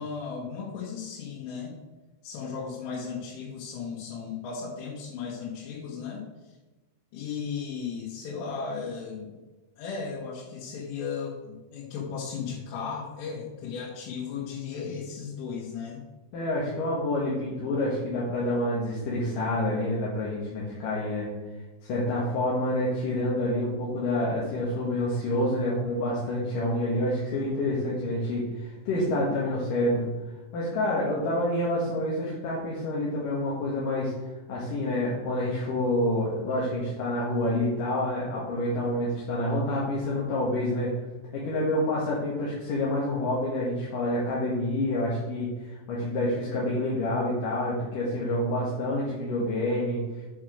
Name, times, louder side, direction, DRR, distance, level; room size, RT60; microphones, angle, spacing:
voice 1, 0.0-1.8 2.2-6.2 7.1-9.4 9.8-16.0 27.6-27.8, left 6 dB, 90° left, -6 dB, 4.0 m, -35 dB
voice 2, 16.3-21.3 21.8-30.1 30.5-34.1 34.5-40.9 41.3-50.0, left 1 dB, 60° left, -5 dB, 2.5 m, -28 dB
8.4 x 4.9 x 6.2 m, 1.2 s
omnidirectional pair, 5.5 m